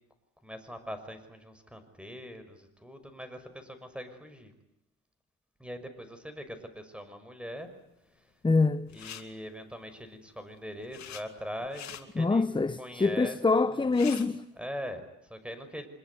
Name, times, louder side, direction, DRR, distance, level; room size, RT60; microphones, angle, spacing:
voice 1, 0.4-4.5 5.6-7.7 8.0-8.3 8.9-12.4 12.8-13.4 13.7-13.9 14.6-15.9, equal, 5° right, 5.9 m, -42 dB
voice 2, 8.4-8.9 12.2-14.5, left 3 dB, 15° left, 1.0 m, -25 dB
sound 1, 8.9-9.2 10.4-11.2 11.6-12.0 13.5-13.6 13.8-14.3, left 10 dB, 65° left, 2.9 m, -44 dB
26.0 x 22.0 x 9.5 m
cardioid pair, 90°, 30 cm